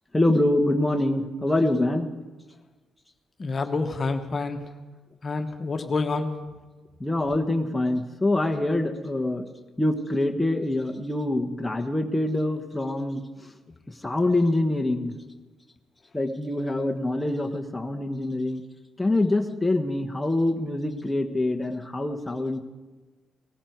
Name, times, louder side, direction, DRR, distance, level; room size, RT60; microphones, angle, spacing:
voice 1, 0.1-2.1 7.0-9.5 9.8-13.2 14.0-15.2 16.1-18.6 19.0-22.6, left 1 dB, 10° left, 3 dB, 1.3 m, -25 dB
voice 2, 3.4-4.6 5.2-6.3, left 3 dB, 45° left, 6 dB, 1.3 m, -27 dB
19.0 x 14.5 x 4.7 m, 1.3 s
supercardioid pair, 65°, 0 cm